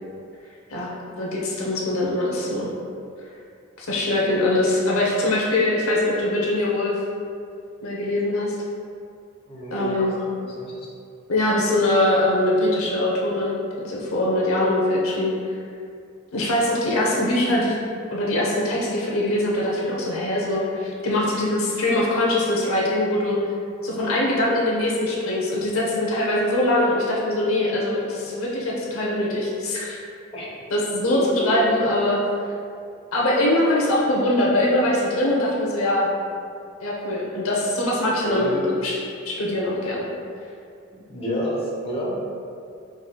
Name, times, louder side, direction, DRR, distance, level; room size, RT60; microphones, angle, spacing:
voice 1, 1.2-2.7 3.8-7.0 7.8-8.5 9.7-10.1 11.3-15.3 16.3-17.8 18.1-23.4 23.8-30.0 30.7-32.2 33.1-36.1 36.8-39.0 39.2-40.0, left 1 dB, 85° left, -4 dB, 0.8 m, -22 dB
voice 2, 9.5-10.9 30.3-30.6 31.1-31.5 38.2-38.7 40.9-42.2, equal, 30° left, -6 dB, 0.9 m, -30 dB
5.0 x 3.9 x 2.2 m, 2.4 s
head